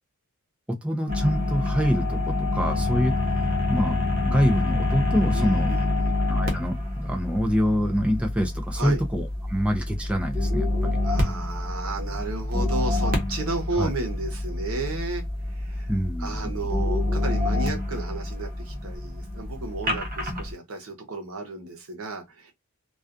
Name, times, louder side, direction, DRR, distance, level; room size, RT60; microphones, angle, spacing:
voice 1, 0.7-3.1 3.7-5.7 6.3-11.0 13.8-13.9 15.9-16.7, equal, 5° right, 0.4 m, -26 dB
sound 1, 1.1-20.5, left 2 dB, 45° right, 0.8 m, -27 dB
voice 2, 5.3-6.1 8.7-9.0 11.0-15.9 16.2-22.5, right 3 dB, 85° right, 0.9 m, -33 dB
2.4 x 2.3 x 2.4 m
head